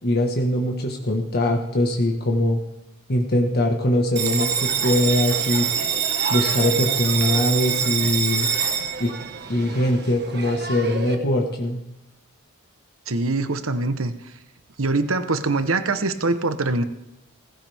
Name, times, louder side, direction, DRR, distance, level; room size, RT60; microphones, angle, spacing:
voice 1, 0.0-2.6 3.1-5.7 6.3-8.5 9.0-9.1 9.5-11.8, left 1 dB, 50° left, 1 dB, 1.5 m, -22 dB
Bell, 4.2-11.2, right 7 dB, 55° right, 1.5 m, -25 dB
voice 2, 13.1-14.1 14.8-16.8, right 3 dB, 70° right, 10 dB, 1.1 m, -23 dB
18.0 x 16.0 x 3.6 m, 0.93 s
head